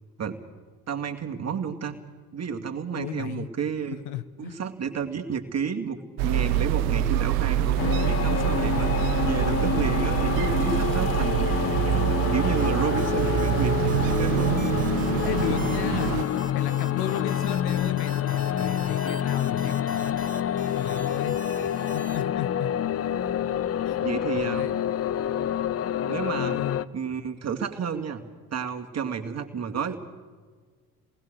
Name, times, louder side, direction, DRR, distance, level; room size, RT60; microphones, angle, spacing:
voice 1, 0.9-2.0 2.3-4.0 4.4-6.0 6.2-13.7 14.1-14.7 24.0-24.7 26.0-26.6 26.9-28.2 28.5-30.0, right 6 dB, 35° right, 3 dB, 2.3 m, -31 dB
voice 2, 2.9-3.5 4.0-4.6 15.3-16.1 16.5-20.2 20.8-21.4 21.9-22.7 23.8-24.0 24.3-24.7 26.4-26.8, left 12 dB, 60° left, 13 dB, 1.0 m, -34 dB
sound 1, 6.2-16.2, right 12 dB, 70° right, 0.9 m, -25 dB
sound 2, 7.8-26.8, left 9 dB, 30° left, 0.7 m, -27 dB
sound 3, 12.6-22.2, right 5 dB, 20° right, 1.3 m, -43 dB
27.5 x 19.5 x 6.4 m, 1.5 s
figure-of-eight pair, 55°, 45 cm